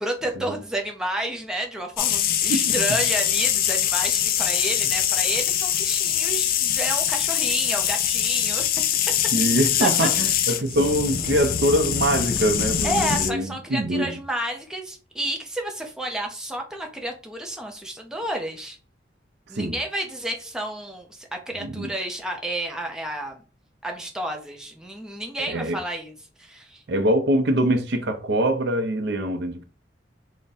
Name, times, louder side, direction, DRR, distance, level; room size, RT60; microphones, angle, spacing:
voice 1, 0.0-9.0 9.8-10.1 12.8-18.8 19.5-23.4 23.8-26.1 26.4-26.8, right 1 dB, 5° right, 0.6 m, -31 dB
sound 1, 2.0-13.3, left 10 dB, 50° left, 0.4 m, -23 dB
voice 2, 2.5-2.8 9.3-14.2 19.5-19.8 21.6-21.9 25.5-25.8 26.9-29.6, right 1 dB, 65° right, 0.6 m, -23 dB
3.5 x 2.1 x 4.0 m
head